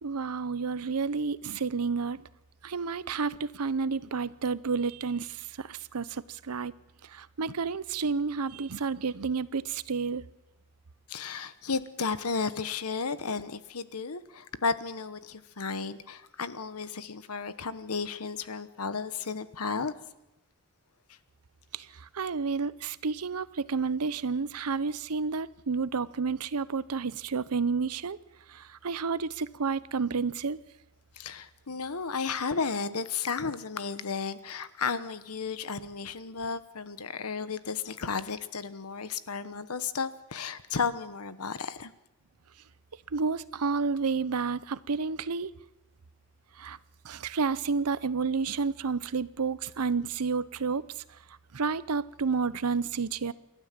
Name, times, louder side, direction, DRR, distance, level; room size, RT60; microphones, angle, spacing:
voice 1, 0.0-2.2 2.6-6.7 7.1-10.2 21.7-21.9 22.1-28.2 28.5-30.6 43.1-45.5 46.6-46.8 47.0-50.8 51.5-53.3, right 5 dB, 90° right, 0.8 m, -30 dB
voice 2, 11.1-19.9 31.2-41.9, left 5 dB, 80° left, 1.1 m, -33 dB
28.0 x 12.5 x 7.5 m
head